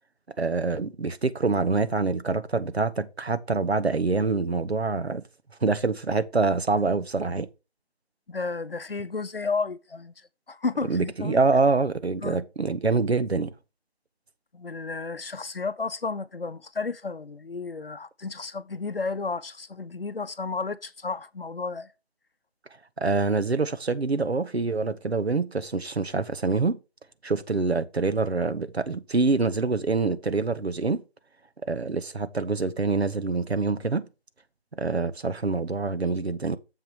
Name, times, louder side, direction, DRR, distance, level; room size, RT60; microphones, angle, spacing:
voice 1, 0.4-5.2 5.6-7.5 10.9-13.5 23.0-26.8 27.2-31.0 31.6-34.1 34.8-36.6, right 3 dB, 75° right, 1.2 m, -25 dB
voice 2, 8.3-10.1 10.5-11.4 12.2-12.4 14.5-21.9, left 4 dB, 60° left, 0.7 m, -32 dB
7.2 x 6.2 x 4.5 m
figure-of-eight pair, 175°, 32 cm